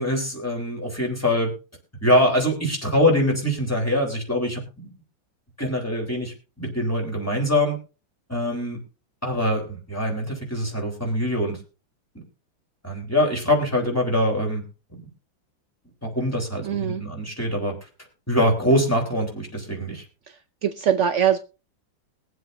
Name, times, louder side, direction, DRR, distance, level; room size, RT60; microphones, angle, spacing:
voice 1, 0.0-1.5 2.0-4.9 5.6-7.8 8.3-8.8 9.2-11.6 12.1-12.2 12.8-14.6 16.0-17.7 18.3-20.0, left 1 dB, 5° left, 0 dB, 3.7 m, -23 dB
voice 2, 16.6-17.0 20.3-21.4, right 9 dB, 70° right, 9 dB, 0.6 m, -23 dB
22.5 x 7.8 x 2.7 m, 0.32 s
omnidirectional pair, 2.1 m